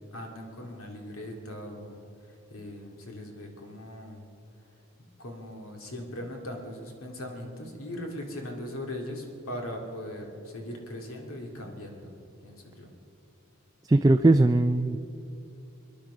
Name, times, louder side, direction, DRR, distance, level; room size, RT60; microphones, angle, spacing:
voice 1, 0.1-2.0 2.5-4.2 5.2-12.1 12.4-12.9, left 1 dB, 85° left, 2 dB, 2.4 m, -39 dB
voice 2, 13.8-15.0, right 2 dB, 15° right, 8 dB, 0.3 m, -20 dB
24.5 x 10.5 x 5.0 m, 2.9 s
head